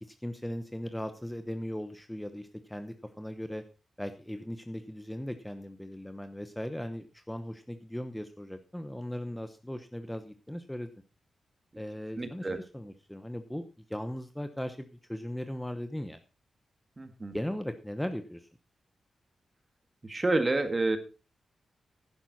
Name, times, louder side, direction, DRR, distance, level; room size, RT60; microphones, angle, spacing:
voice 1, 0.0-3.6 4.0-10.9 11.8-16.2 17.3-18.5, equal, 5° left, 9 dB, 0.9 m, -38 dB
voice 2, 12.2-12.6 17.0-17.4 20.0-21.0, right 2 dB, 25° right, 9 dB, 1.7 m, -29 dB
11.0 x 10.5 x 4.1 m, 0.32 s
wide cardioid pair, 110°, 0 cm